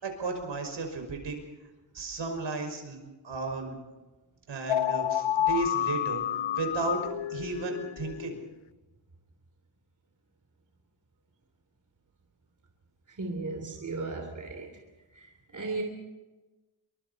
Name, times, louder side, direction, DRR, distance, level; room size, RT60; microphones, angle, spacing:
voice 1, 0.0-1.4 1.9-3.0 3.2-3.8 4.5-6.2 6.6-7.0 7.3-8.4, right 3 dB, 80° right, 3 dB, 5.9 m, -34 dB
sound 1, 4.7-8.5, left 11 dB, 85° left, 0.6 m, -30 dB
voice 2, 13.1-14.8 15.1-15.8, right 3 dB, 40° right, 3 dB, 3.4 m, -36 dB
27.5 x 24.0 x 4.3 m, 1.1 s
wide cardioid pair, 160°, 45 cm